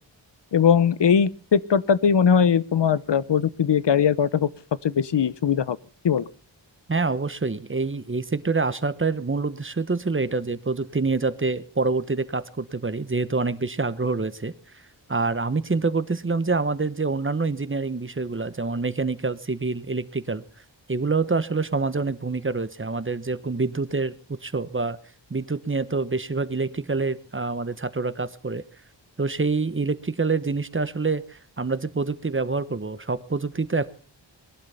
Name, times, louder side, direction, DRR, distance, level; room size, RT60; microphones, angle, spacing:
voice 1, 0.5-4.5 4.8-5.8 6.0-6.3, left 7 dB, 70° left, 18 dB, 0.9 m, -20 dB
voice 2, 6.9-14.5 15.1-20.4 20.9-25.0 25.3-28.6 29.2-33.9, right 3 dB, 25° right, 15 dB, 1.0 m, -26 dB
21.0 x 11.5 x 5.6 m, 0.40 s
wide cardioid pair, 90°, 44 cm